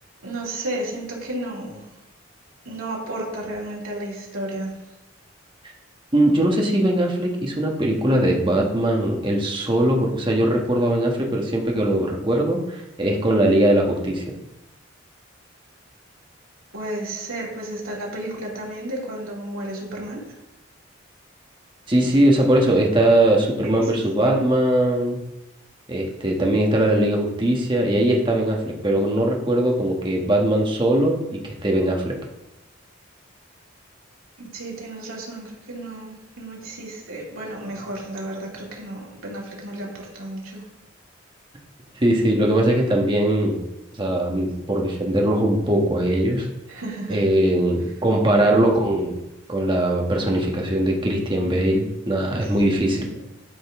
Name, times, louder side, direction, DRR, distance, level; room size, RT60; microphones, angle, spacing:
voice 1, 0.2-1.9 2.6-4.8 16.7-20.2 23.6-23.9 24.2-24.3 34.4-40.7 46.7-47.2 52.4-52.6 53.0-53.1, right 1 dB, 90° right, -3 dB, 2.6 m, -33 dB
voice 2, 6.1-14.2 21.9-25.2 25.9-31.2 31.6-32.2 41.9-43.6 44.0-46.5 47.1-49.1 49.5-53.1, right 1 dB, 25° right, 0 dB, 1.2 m, -20 dB
11.5 x 5.2 x 3.6 m, 0.93 s
head